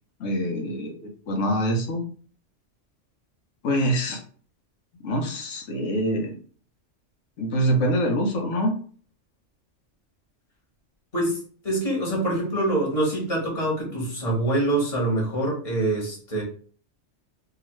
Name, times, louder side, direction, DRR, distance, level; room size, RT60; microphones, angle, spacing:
voice 1, 0.2-2.0 3.6-4.2 5.0-6.4 7.4-8.7, equal, 90° left, 2 dB, 1.1 m, -25 dB
voice 2, 11.6-16.4, right 1 dB, 30° left, -3 dB, 1.3 m, -25 dB
2.8 x 2.4 x 3.0 m, 0.44 s
omnidirectional pair, 1.3 m